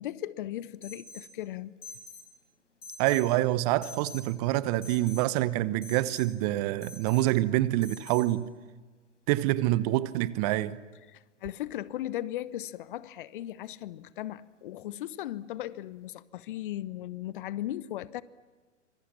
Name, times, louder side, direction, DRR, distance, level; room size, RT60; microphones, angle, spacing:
voice 1, 0.0-1.7 11.1-18.2, left 13 dB, 45° left, 0.9 m, -37 dB
Alarm, 0.8-1.3 1.8-2.3 2.8-3.3 3.8-4.3 4.8-5.3 5.8-6.3 6.8-7.3 7.8-8.3, left 2 dB, 70° left, 7.8 m, -45 dB
voice 2, 3.0-8.5 9.3-10.8, right 16 dB, 30° right, 1.0 m, -26 dB
26.5 x 26.5 x 7.4 m
figure-of-eight pair, 115°, 37 cm